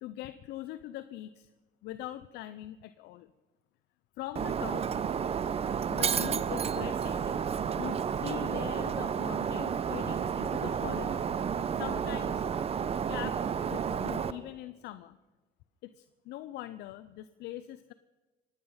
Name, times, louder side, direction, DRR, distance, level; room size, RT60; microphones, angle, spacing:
voice 1, 0.0-1.5 1.8-3.3 4.2-4.9 5.9-7.5 7.8-11.4 11.8-12.5 13.1-13.4 13.7-15.2 15.8-17.9, left 14 dB, 85° left, 12 dB, 0.6 m, -42 dB
Shatter, 4.4-14.3, right 7 dB, 35° right, 0.7 m, -31 dB
25.0 x 9.7 x 5.6 m, 1.2 s
cardioid pair, 110°, 17 cm